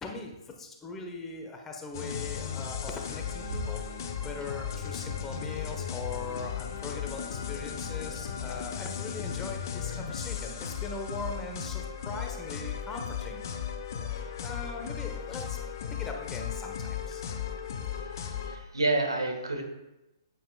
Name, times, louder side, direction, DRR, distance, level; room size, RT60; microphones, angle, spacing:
voice 1, 0.0-3.8 4.2-13.5 13.9-15.6 16.0-17.2, left 3 dB, 15° left, 2 dB, 1.2 m, -40 dB
sound 1, 1.9-18.6, left 7 dB, 50° left, 1.0 m, -36 dB
voice 2, 18.5-19.6, right 2 dB, 80° right, 4 dB, 1.7 m, -28 dB
9.0 x 8.9 x 2.4 m, 0.94 s
figure-of-eight pair, 120°, 3 cm